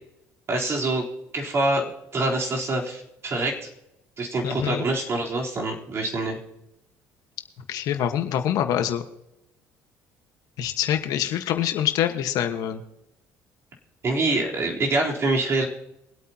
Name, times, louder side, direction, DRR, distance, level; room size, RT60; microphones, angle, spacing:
voice 1, 0.5-1.1 1.3-3.7 4.2-6.4 14.0-15.6, right 2 dB, 45° right, -2 dB, 3.7 m, -25 dB
voice 2, 4.4-4.8 7.7-9.0 10.6-12.8, left 10 dB, 70° left, 7 dB, 1.4 m, -25 dB
23.5 x 8.6 x 2.9 m, 0.85 s
supercardioid pair, 75°, 6 cm